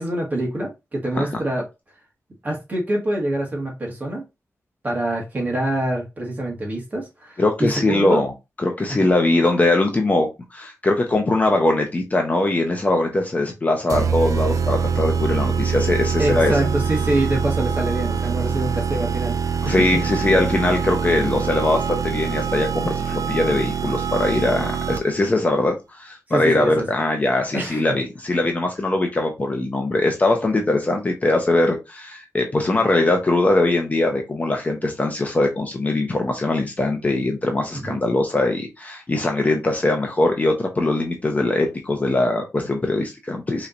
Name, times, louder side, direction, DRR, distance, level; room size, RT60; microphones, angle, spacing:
voice 1, 0.0-1.7 2.4-4.2 4.8-8.2 8.9-9.1 16.2-20.0 26.3-26.9 27.5-28.0 37.7-38.0, right 1 dB, 30° right, 1.7 m, -25 dB
voice 2, 7.4-8.3 8.6-16.5 19.6-43.7, left 2 dB, 25° left, 0.8 m, -21 dB
sound 1, 13.9-25.3, right 6 dB, 80° right, 0.4 m, -24 dB
5.6 x 3.2 x 2.6 m
wide cardioid pair, 175°, 6 cm